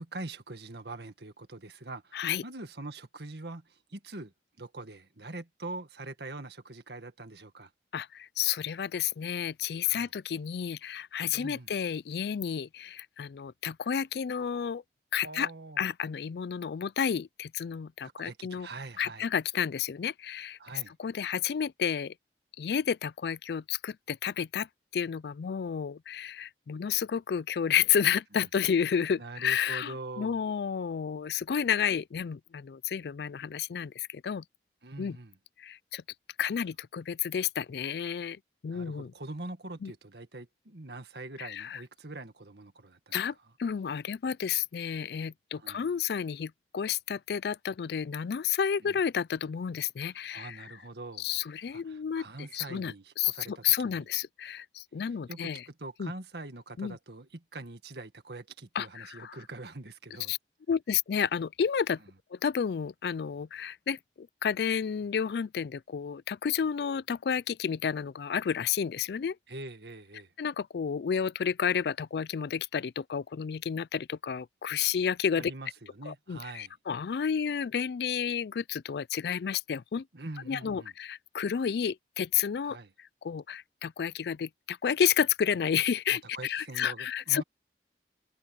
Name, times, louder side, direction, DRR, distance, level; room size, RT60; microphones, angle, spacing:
voice 1, 0.0-4.3 4.6-7.7 9.8-10.1 11.3-11.7 15.2-15.8 18.2-19.3 20.6-20.9 29.2-30.4 34.8-35.4 38.7-43.2 45.6-45.9 48.8-49.0 50.3-51.3 51.7-54.1 55.3-60.3 69.5-70.3 75.4-76.8 80.1-80.9 82.6-82.9 86.1-87.4, right 2 dB, 70° right, 1.8 m, -43 dB
voice 2, 7.9-14.8 15.1-15.5 15.8-18.7 19.0-20.6 21.0-22.1 22.6-24.7 24.9-34.4 35.0-35.2 35.6-36.0 36.4-39.1 39.8-39.9 41.4-41.8 43.1-43.3 43.6-50.7 51.2-52.2 52.5-55.6 56.0-56.1 56.8-57.0 58.8-59.4 60.3-60.4 60.7-62.0 62.3-69.4 70.4-75.5 76.1-80.1 80.5-82.8 83.2-87.4, left 7 dB, 65° left, 0.4 m, -31 dB
head